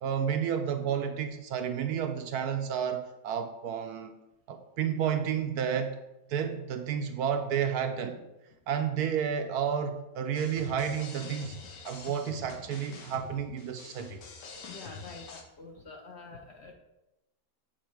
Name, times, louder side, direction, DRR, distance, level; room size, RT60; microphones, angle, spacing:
voice 1, 0.0-4.1 4.5-6.0 6.3-8.2 8.7-11.6 11.8-14.2, right 8 dB, 70° right, 6 dB, 1.0 m, -31 dB
sound 1, 10.3-15.4, left 5 dB, 80° left, 1.6 m, -46 dB
voice 2, 14.7-16.7, left 3 dB, 50° left, 1 dB, 0.9 m, -47 dB
7.7 x 4.2 x 4.6 m, 0.95 s
omnidirectional pair, 1.8 m